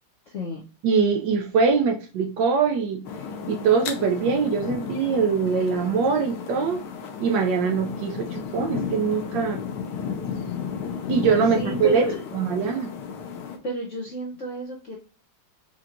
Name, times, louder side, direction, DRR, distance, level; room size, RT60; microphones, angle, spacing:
voice 1, 0.3-0.6 11.5-12.2 13.6-15.0, right 1 dB, 65° left, -2 dB, 0.7 m, -31 dB
voice 2, 0.8-3.0 3.5-6.8 7.2-9.6 11.1-12.0 12.3-12.9, right 5 dB, 70° right, 4 dB, 1.1 m, -23 dB
sound 1, 3.0-13.6, left 6 dB, 85° left, 1.6 m, -33 dB
5.7 x 2.8 x 2.5 m, 0.36 s
omnidirectional pair, 2.3 m